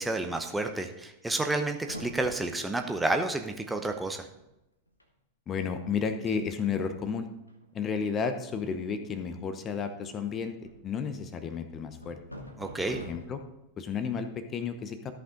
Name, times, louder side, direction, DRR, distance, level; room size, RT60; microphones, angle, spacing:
voice 1, 0.0-4.3 12.6-13.0, right 2 dB, 5° right, 5 dB, 0.8 m, -30 dB
sound 1, 1.8-3.0 3.9-4.0 4.1-4.5 4.9-5.0 5.6-5.7 6.1-6.4 7.5-8.0 10.0-11.0 12.0-13.6, equal, 85° left, 1.1 m, -46 dB
voice 2, 5.5-7.3 7.7-10.6 10.8-12.2 12.9-13.4 13.8-15.1, left 6 dB, 25° left, 9 dB, 0.9 m, -32 dB
13.5 x 5.6 x 3.8 m, 0.90 s
figure-of-eight pair, 90°, 0 cm